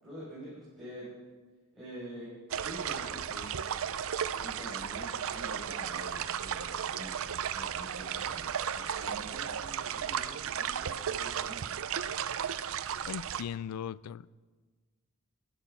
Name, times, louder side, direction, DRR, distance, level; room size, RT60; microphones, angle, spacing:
voice 1, 0.0-1.1 1.7-2.3 2.6-3.5 4.4-11.8, equal, ahead, 6.0 m, -46 dB
sound 1, 2.5-13.4, right 8 dB, 65° right, 0.5 m, -35 dB
voice 2, 13.1-14.3, left 8 dB, 90° left, 0.4 m, -38 dB
15.5 x 11.0 x 5.7 m
head